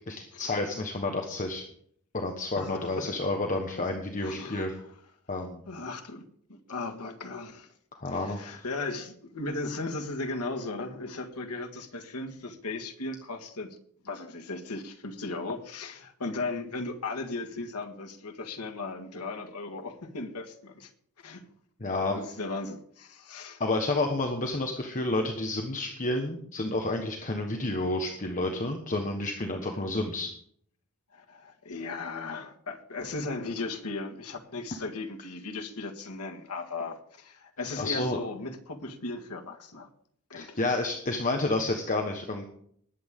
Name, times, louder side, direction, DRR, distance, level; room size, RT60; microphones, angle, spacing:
voice 1, 0.1-1.6 2.1-4.7 5.3-5.6 7.9-8.6 21.8-22.2 23.6-30.3 37.8-38.2 40.3-42.5, left 2 dB, 35° left, 1.3 m, -30 dB
voice 2, 2.6-3.1 4.2-4.7 5.7-6.2 6.5-7.7 8.1-13.8 14.0-20.9 21.2-21.5 22.0-23.6 31.1-39.9 40.3-40.6, left 3 dB, 90° left, 1.8 m, -37 dB
20.0 x 8.6 x 3.7 m
head